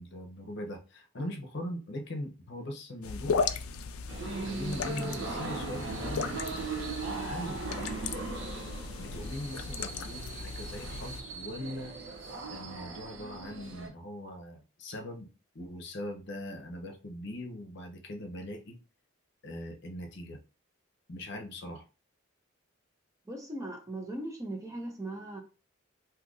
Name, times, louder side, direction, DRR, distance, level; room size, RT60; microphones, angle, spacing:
voice 1, 0.0-3.4 4.4-6.3 6.9-7.6 9.0-11.9 12.5-15.3 15.5-18.8 19.4-20.4 21.1-21.8, left 1 dB, 55° left, 0.7 m, -40 dB
sound 1, 3.0-11.2, left 5 dB, 85° left, 0.4 m, -36 dB
sound 2, 4.1-13.9, right 3 dB, 60° right, 0.7 m, -39 dB
voice 2, 23.2-25.4, right 1 dB, 15° right, 0.6 m, -38 dB
2.7 x 2.5 x 3.7 m
head